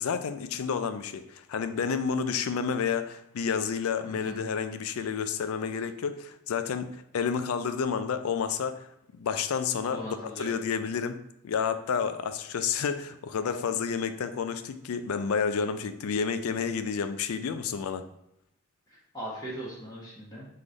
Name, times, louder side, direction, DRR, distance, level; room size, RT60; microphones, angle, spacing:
voice 1, 0.0-8.9 9.1-18.0, left 6 dB, 90° left, 10 dB, 0.4 m, -30 dB
voice 2, 4.0-4.4 9.9-10.6 18.9-20.5, right 1 dB, 20° left, -6 dB, 1.2 m, -39 dB
3.8 x 3.3 x 3.9 m, 0.80 s
head